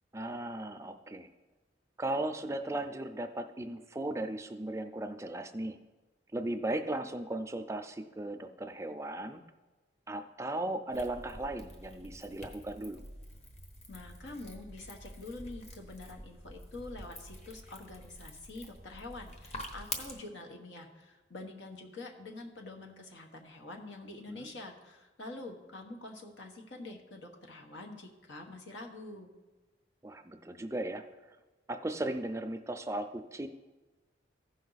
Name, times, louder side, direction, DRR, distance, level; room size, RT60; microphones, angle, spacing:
voice 1, 0.1-1.3 2.0-5.8 6.3-9.4 10.1-13.0 24.3-24.5 30.0-31.4 31.7-33.5, right 1 dB, 15° right, 7 dB, 0.4 m, -37 dB
sound 1, 10.9-20.1, left 1 dB, 35° left, 1.1 m, -47 dB
voice 2, 13.9-29.3, left 2 dB, 90° left, 2 dB, 1.4 m, -46 dB
15.0 x 5.5 x 4.0 m, 1.2 s
head